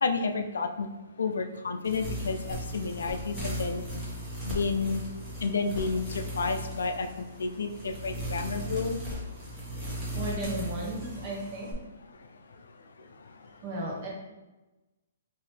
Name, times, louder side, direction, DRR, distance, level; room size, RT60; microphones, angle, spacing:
voice 1, 0.0-0.9 1.2-3.8 4.4-5.0 5.4-9.0, left 4 dB, 80° left, 7 dB, 0.3 m, -30 dB
sound 1, 1.8-11.7, equal, 10° right, 1.2 m, -37 dB
voice 2, 10.1-11.7 13.6-14.1, right 1 dB, 40° right, -3 dB, 1.0 m, -34 dB
2.9 x 2.8 x 3.2 m, 1.1 s
hypercardioid pair, 140°, 0 cm